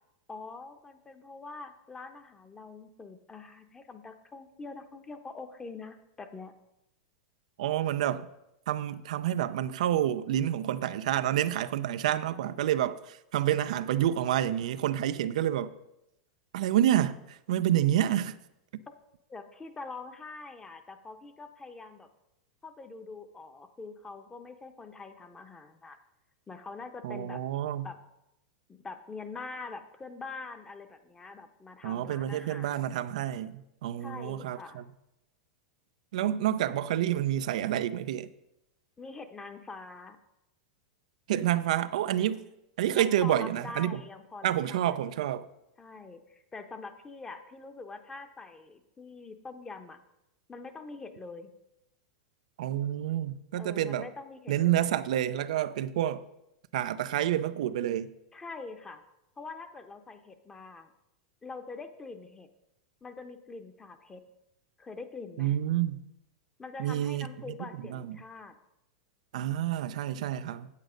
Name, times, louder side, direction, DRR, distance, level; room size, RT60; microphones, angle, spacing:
voice 1, 0.3-6.5 19.3-22.1 22.6-26.0 26.5-27.4 27.8-28.0 28.7-32.8 34.0-34.8 39.0-40.2 42.9-45.1 45.8-50.0 50.5-51.5 53.5-55.0 58.3-59.0 59.4-60.9 61.4-62.5 63.0-64.2 64.8-65.6 66.6-68.5, left 3 dB, 15° left, 1.0 m, -44 dB
voice 2, 7.6-8.3 8.7-15.7 16.5-18.4 27.0-27.9 31.8-34.8 36.1-38.3 41.3-42.5 42.8-44.0 44.4-45.5 52.6-54.1 54.5-56.2 56.7-58.1 65.4-66.0 66.8-67.3 67.9-68.2 69.3-70.7, right 12 dB, 75° right, 0.5 m, -28 dB
8.3 x 7.9 x 5.1 m
hypercardioid pair, 120°, 4 cm